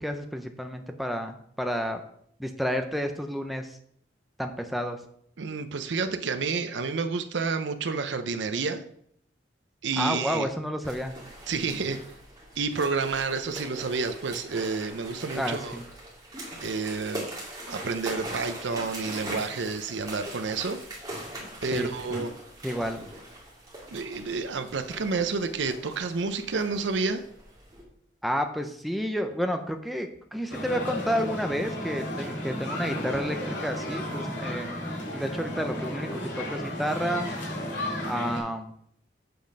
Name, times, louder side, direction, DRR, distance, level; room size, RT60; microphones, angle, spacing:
voice 1, 0.0-2.0 2.4-3.8 4.4-5.0 10.0-11.1 15.3-15.8 21.7-22.3 22.6-23.0 28.2-34.8 35.1-37.3 38.0-38.7, equal, ahead, 5 dB, 0.5 m, -30 dB
voice 2, 5.4-8.8 9.8-10.5 11.5-12.0 12.6-15.8 16.6-17.3 17.7-20.8 21.6-22.3 23.9-27.2, right 4 dB, 75° right, 8 dB, 0.6 m, -29 dB
sound 1, 10.8-27.8, right 1 dB, 20° right, 2.4 m, -41 dB
sound 2, 30.5-38.4, left 1 dB, 85° left, 3.0 m, -33 dB
7.8 x 5.1 x 5.3 m, 0.69 s
head